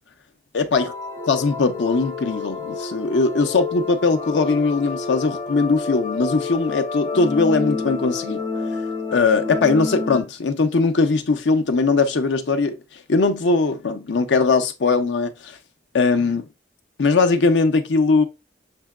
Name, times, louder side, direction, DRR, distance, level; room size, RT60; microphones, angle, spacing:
voice 1, 0.5-0.9 1.3-8.5 9.1-12.8 13.1-15.6 15.9-16.4 17.0-18.2, left 3 dB, 85° left, 0.6 m, -20 dB
sound 1, 0.7-10.2, left 4 dB, 20° left, 0.6 m, -29 dB
6.6 x 2.2 x 2.3 m
head